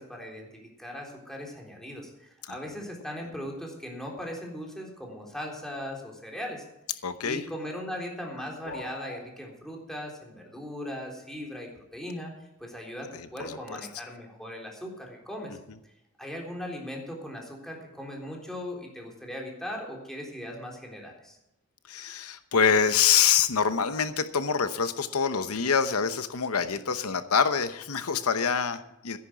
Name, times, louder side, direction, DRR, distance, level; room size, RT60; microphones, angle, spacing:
voice 1, 0.0-6.6 7.2-12.3 12.6-15.6 16.2-21.4, equal, ahead, -1 dB, 3.7 m, -39 dB
voice 2, 7.0-7.4 13.4-13.6 21.9-29.2, left 6 dB, 90° left, 11 dB, 0.9 m, -25 dB
sound 1, 8.6-9.2, left 3 dB, 55° left, 2.5 m, -40 dB
14.0 x 10.5 x 6.0 m, 0.89 s
head